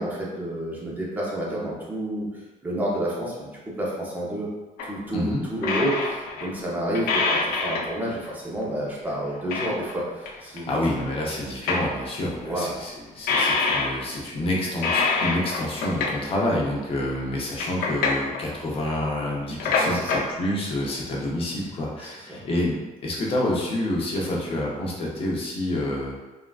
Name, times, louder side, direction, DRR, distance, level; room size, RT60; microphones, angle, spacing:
voice 1, 0.0-2.3 2.6-4.5 4.8-10.7 12.4-12.7 19.8-20.2 22.0-22.4, right 1 dB, 10° right, -5 dB, 0.6 m, -30 dB
sound 1, 4.8-4.9 5.6-6.5 6.9-7.9 8.2-8.3 8.6-8.7 9.1-9.9 10.3-10.4 10.6-10.7 10.9-12.1 13.3-14.1 14.7-16.3 16.8-16.9 17.3-18.4 19.4-20.3 20.8-20.9 21.2-21.3, left 4 dB, 90° left, 0.5 m, -25 dB
voice 2, 5.1-5.4 10.6-26.2, left 1 dB, 40° left, -3 dB, 0.7 m, -28 dB
3.5 x 2.3 x 2.3 m, 1.1 s
cardioid pair, 165°, 15 cm